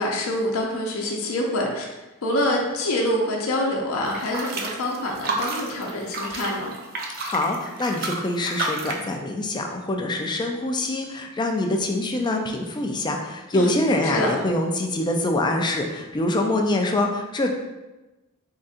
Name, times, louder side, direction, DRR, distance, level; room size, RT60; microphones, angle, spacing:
voice 1, 0.0-1.8 2.2-6.7 13.5-14.3, left 1 dB, 70° left, -1 dB, 0.7 m, -26 dB
sound 1, 4.1-9.1, right 3 dB, 45° right, 0.5 m, -31 dB
voice 2, 7.2-17.5, left 1 dB, 20° left, 2 dB, 0.4 m, -25 dB
4.0 x 3.6 x 2.5 m, 1.1 s
head